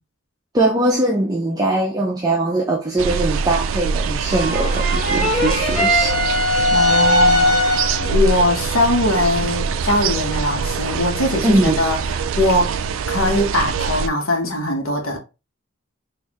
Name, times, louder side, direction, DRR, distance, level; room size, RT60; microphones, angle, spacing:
voice 1, 0.5-6.2 11.4-11.8, right 1 dB, 20° right, 0.5 m, -20 dB
sound 1, 3.0-14.1, right 5 dB, 75° right, 0.3 m, -23 dB
sound 2, 4.3-8.1, left 1 dB, 5° right, 1.6 m, -19 dB
voice 2, 6.7-12.0 12.4-12.7 13.1-15.2, left 1 dB, 80° left, 1.1 m, -20 dB
4.2 x 2.6 x 2.9 m
head